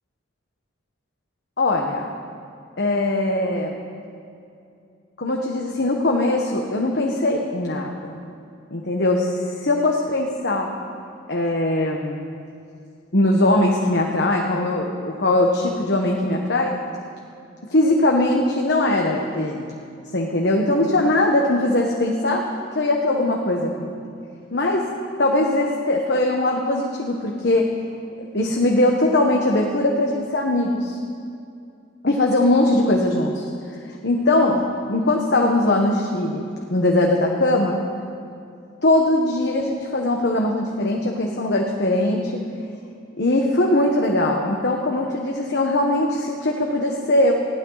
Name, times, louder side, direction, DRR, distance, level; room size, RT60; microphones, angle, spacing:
voice 1, 1.6-2.0 2.8-3.8 5.2-8.2 8.7-10.7 11.3-12.2 13.1-16.8 17.7-19.8 20.1-22.4 22.7-23.9 24.5-24.9 25.2-27.7 28.3-31.0 32.0-33.5 33.8-37.8 38.8-42.4 43.2-47.3, left 1 dB, 60° left, 0 dB, 1.3 m, -21 dB
20.5 x 15.5 x 4.1 m, 2.5 s
head